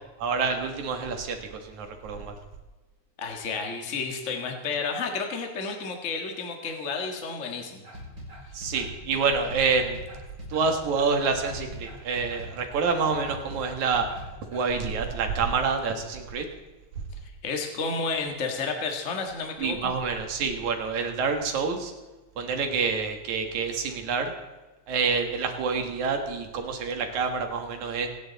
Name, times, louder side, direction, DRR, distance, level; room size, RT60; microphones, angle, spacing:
voice 1, 0.2-2.3 8.5-10.0 10.5-14.1 14.5-16.5 19.6-21.9 22.4-24.3 24.9-28.1, right 5 dB, 75° right, 4 dB, 3.0 m, -27 dB
voice 2, 3.2-7.8 8.5-8.6 17.4-19.9, left 4 dB, 30° left, 3 dB, 1.7 m, -31 dB
sound 1, 7.8-14.9, equal, 35° right, 5.4 m, -41 dB
26.0 x 10.0 x 4.1 m, 1.2 s
omnidirectional pair, 3.4 m